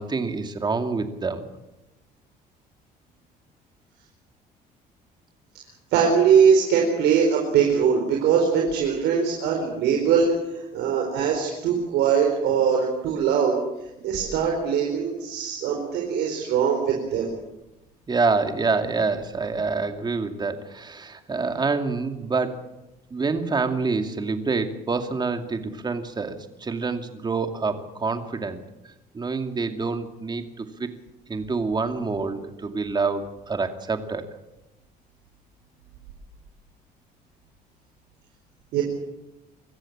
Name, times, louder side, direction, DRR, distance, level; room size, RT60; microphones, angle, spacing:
voice 1, 0.0-1.5 18.1-22.6 23.1-28.6 29.1-30.9 31.3-34.2, right 4 dB, 25° right, 6 dB, 2.5 m, -27 dB
voice 2, 5.9-10.3 10.7-13.6 14.0-17.3 38.7-38.8, right 7 dB, 85° right, 1 dB, 4.5 m, -21 dB
25.0 x 14.5 x 8.7 m, 0.96 s
cardioid pair, 110°, 17 cm